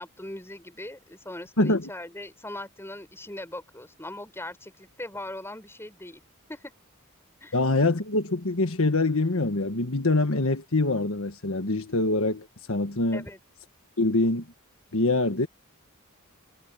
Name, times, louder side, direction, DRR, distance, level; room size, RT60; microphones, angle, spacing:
voice 1, 0.0-6.2 6.5-6.7 7.4-7.5 13.1-13.4, left 1 dB, 10° left, 5.3 m, -40 dB
voice 2, 1.6-1.9 7.5-13.2 14.0-14.4 14.9-15.5, left 2 dB, 65° left, 1.5 m, -24 dB
head